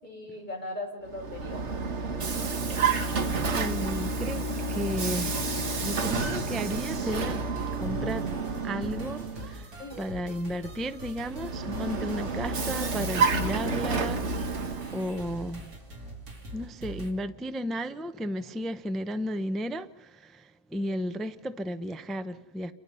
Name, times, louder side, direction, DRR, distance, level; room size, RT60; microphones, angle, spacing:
voice 1, 0.0-1.6 9.8-10.2, left 1 dB, 30° left, 6.0 m, -38 dB
Vehicle, 1.0-9.6 11.2-15.1, right 4 dB, 45° right, 1.6 m, -30 dB
voice 2, 3.5-7.4 7.8-8.3 8.6-9.7 10.0-15.7 16.5-22.7, equal, ahead, 0.4 m, -34 dB
sound 1, 7.6-17.1, equal, 70° right, 3.8 m, -44 dB
29.0 x 24.0 x 5.6 m
omnidirectional pair, 1.7 m